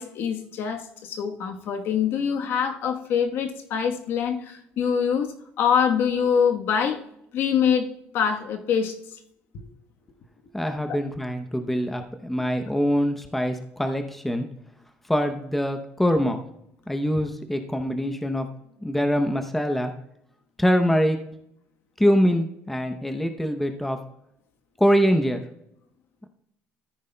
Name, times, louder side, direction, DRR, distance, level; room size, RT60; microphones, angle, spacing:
voice 1, 0.0-5.3 5.6-7.0 7.3-7.9 8.1-8.9 9.5-9.7 10.9-11.0, left 7 dB, 55° left, 5 dB, 1.1 m, -24 dB
voice 2, 10.5-14.5 15.1-16.4 16.9-18.5 18.8-19.9 20.6-21.2 22.0-24.0 24.8-25.4, equal, 5° left, 6 dB, 0.7 m, -24 dB
14.0 x 9.6 x 2.2 m, 0.77 s
cardioid pair, 145°, 4 cm